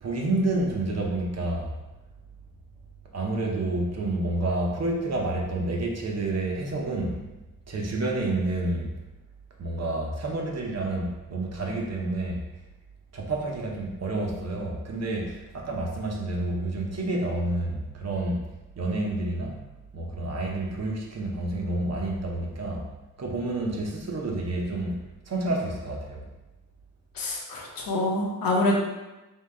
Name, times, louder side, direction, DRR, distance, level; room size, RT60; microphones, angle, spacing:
voice 1, 0.0-1.7 3.1-7.2 7.7-8.9 9.6-12.4 13.1-18.4 18.8-19.6 19.9-22.9 23.2-26.3, right 2 dB, 50° right, -1 dB, 0.9 m, -29 dB
voice 2, 27.2-28.8, left 1 dB, 90° left, -1 dB, 1.0 m, -26 dB
3.7 x 2.9 x 4.3 m, 1.0 s
wide cardioid pair, 110°, 34 cm